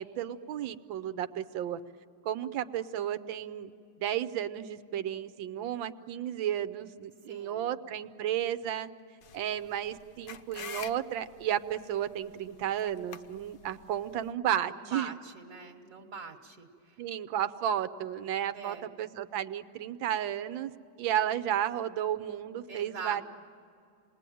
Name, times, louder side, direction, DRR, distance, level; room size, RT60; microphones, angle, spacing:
voice 1, 0.0-1.8 2.2-3.7 4.0-8.9 9.3-15.1 17.0-20.7 21.0-23.2, right 10 dB, 85° right, 11 dB, 1.5 m, -33 dB
voice 2, 7.2-7.6 14.7-17.0 18.5-18.9 22.7-23.2, right 5 dB, 50° right, 0 dB, 1.7 m, -43 dB
sound 1, 9.2-14.3, left 7 dB, 70° left, 1.5 m, -48 dB
28.0 x 20.5 x 9.2 m, 2.5 s
omnidirectional pair, 2.1 m